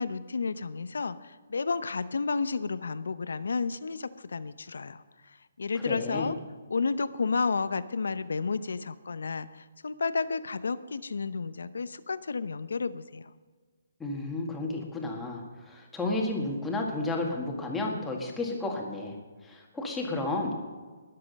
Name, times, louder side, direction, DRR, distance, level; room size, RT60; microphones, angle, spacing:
voice 1, 0.0-5.0 5.6-6.4 6.7-13.3, left 4 dB, 85° left, 14 dB, 0.8 m, -31 dB
voice 2, 5.8-6.3 14.0-20.6, left 2 dB, 5° left, -2 dB, 1.9 m, -32 dB
20.5 x 7.7 x 5.4 m, 1.4 s
hypercardioid pair, 165°, 0 cm